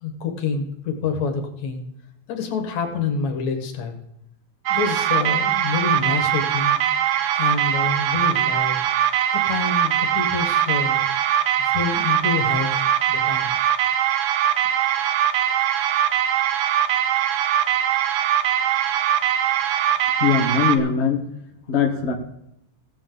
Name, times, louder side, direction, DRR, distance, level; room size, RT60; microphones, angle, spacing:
voice 1, 0.0-1.8 2.3-4.0 4.7-6.8 7.4-8.8 9.3-11.0 11.6-13.5, left 5 dB, 70° left, 5 dB, 2.7 m, -27 dB
sound 1, 4.7-20.8, right 10 dB, 85° right, 1.3 m, -21 dB
voice 2, 20.2-21.2 21.7-22.1, left 6 dB, 45° left, 3 dB, 0.9 m, -20 dB
17.0 x 7.5 x 3.8 m, 0.81 s
omnidirectional pair, 3.4 m